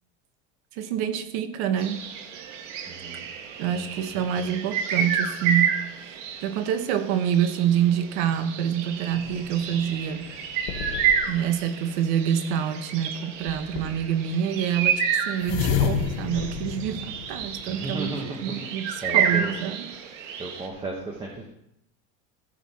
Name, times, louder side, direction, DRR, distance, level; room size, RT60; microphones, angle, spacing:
voice 1, 0.7-2.0 3.6-5.7 6.0-10.2 11.3-19.9 20.2-20.4, right 9 dB, 60° right, 10 dB, 1.2 m, -27 dB
sound 1, 1.8-20.7, right 7 dB, 85° right, 1.6 m, -30 dB
voice 2, 2.9-3.3 3.7-3.8 4.1-4.5 13.8-13.9 17.7-18.7 19.0-19.5 20.4-21.5, right 2 dB, 15° right, 0 dB, 1.1 m, -35 dB
sound 2, 9.1-11.5 13.5-14.1 15.4-17.9, left 8 dB, 55° left, 1.3 m, -31 dB
14.5 x 6.5 x 4.3 m, 0.79 s
cardioid pair, 170°, 37 cm